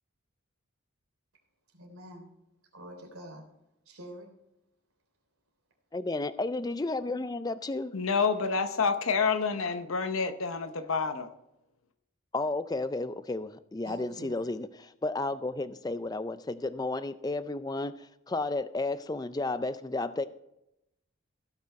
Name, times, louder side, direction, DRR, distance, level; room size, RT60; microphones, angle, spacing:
voice 1, 1.7-2.3 2.7-3.4 3.8-4.3 13.8-14.4, equal, 75° right, 1 dB, 3.2 m, -46 dB
voice 2, 5.9-7.9 12.3-20.3, left 2 dB, 15° left, 13 dB, 0.4 m, -32 dB
voice 3, 7.9-11.3, left 5 dB, 70° left, 8 dB, 0.8 m, -28 dB
16.5 x 6.0 x 4.3 m, 0.85 s
head